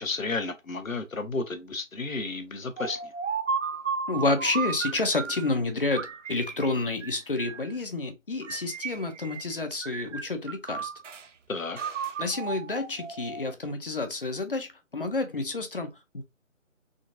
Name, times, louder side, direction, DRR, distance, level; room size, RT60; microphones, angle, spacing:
voice 1, 0.0-3.1 11.5-11.8, left 3 dB, 85° left, 0.8 m, -32 dB
sound 1, 2.8-5.5 6.0-7.8 8.4-9.5 9.8-11.3 11.8-13.5, right 6 dB, 70° right, 0.5 m, -34 dB
voice 2, 4.1-10.9 12.2-16.2, left 3 dB, 45° left, 0.5 m, -29 dB
3.7 x 2.3 x 2.5 m
figure-of-eight pair, 150°, 39 cm